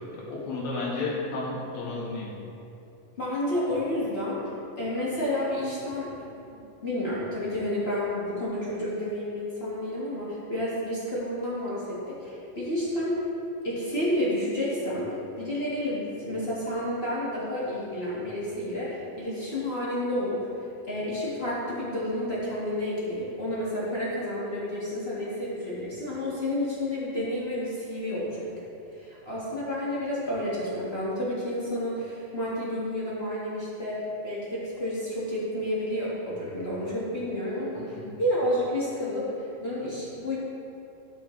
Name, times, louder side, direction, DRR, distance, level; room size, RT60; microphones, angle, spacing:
voice 1, 0.1-2.3 37.8-38.1, left 3 dB, 85° left, -5 dB, 3.3 m, -33 dB
voice 2, 3.2-4.4 4.8-6.2 6.8-13.3 13.6-20.5 20.9-28.5 29.0-40.4, left 1 dB, 45° left, -8 dB, 0.8 m, -30 dB
12.5 x 5.8 x 3.2 m, 2.8 s
omnidirectional pair, 3.9 m